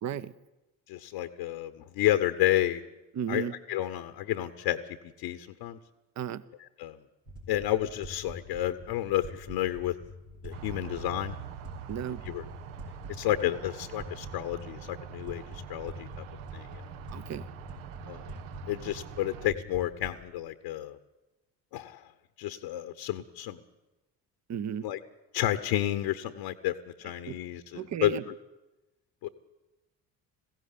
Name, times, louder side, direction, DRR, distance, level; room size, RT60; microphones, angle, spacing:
voice 1, 0.0-0.3 3.1-3.5 6.2-6.4 11.9-12.2 17.1-17.5 24.5-24.9 27.3-27.4 27.7-28.2, right 9 dB, 35° right, 0.8 m, -34 dB
voice 2, 0.9-2.8 3.3-4.8 5.2-5.8 6.8-7.0 7.5-9.9 10.4-11.4 12.3-12.4 13.1-16.1 16.5-16.7 18.1-18.3 18.7-21.0 21.7-22.0 22.4-23.6 24.8-25.0 25.3-28.2 29.2-29.3, left 13 dB, 60° left, 1.1 m, -31 dB
sound 1, 7.3-20.2, left 1 dB, 90° right, 4.9 m, -45 dB
sound 2, 10.5-19.5, right 11 dB, 70° right, 0.9 m, -45 dB
20.5 x 16.0 x 8.4 m
figure-of-eight pair, 50°, 49 cm